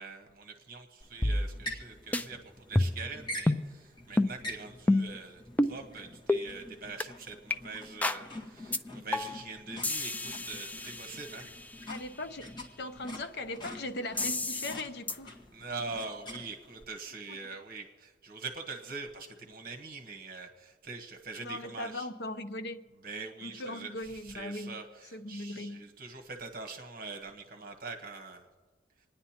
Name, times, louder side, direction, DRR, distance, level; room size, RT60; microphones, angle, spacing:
voice 1, 0.0-11.5 15.5-22.1 23.0-28.4, right 4 dB, 55° right, 1.2 m, -43 dB
sound 1, 1.0-16.8, left 1 dB, 25° left, 1.7 m, -46 dB
sound 2, 1.2-1.9 2.1-2.2 2.8-3.1 3.5-3.7 4.2-4.3 4.9-5.2 5.6-5.8 6.3-6.4 7.0-7.1 7.5-7.6 8.0-8.2 8.7-8.8 9.1-9.5 9.8-11.7 14.2-14.8 15.1-15.2, left 2 dB, 10° left, 0.3 m, -29 dB
voice 2, 11.9-12.5 12.8-15.4 17.3-17.4 21.4-22.9 23.4-24.8 25.1-25.9, left 1 dB, 65° left, 0.8 m, -39 dB
27.5 x 10.0 x 2.9 m
head